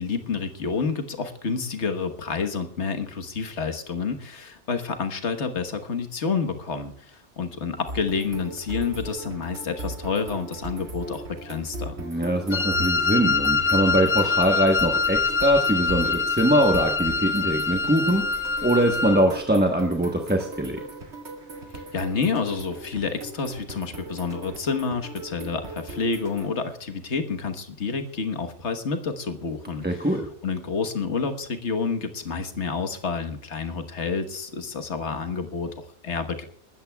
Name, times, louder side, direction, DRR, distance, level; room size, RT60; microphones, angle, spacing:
voice 1, 0.0-12.0 21.7-36.4, left 5 dB, 80° left, 7 dB, 1.6 m, -29 dB
sound 1, 7.9-26.5, right 2 dB, 75° right, 2.1 m, -39 dB
voice 2, 12.0-20.8 29.8-30.3, right 1 dB, 10° right, 1 dB, 1.0 m, -22 dB
Wind instrument woodwind instrument, 12.5-19.2, left 4 dB, 30° left, 0.8 m, -24 dB
28.0 x 13.0 x 2.3 m, 0.63 s
omnidirectional pair, 1.2 m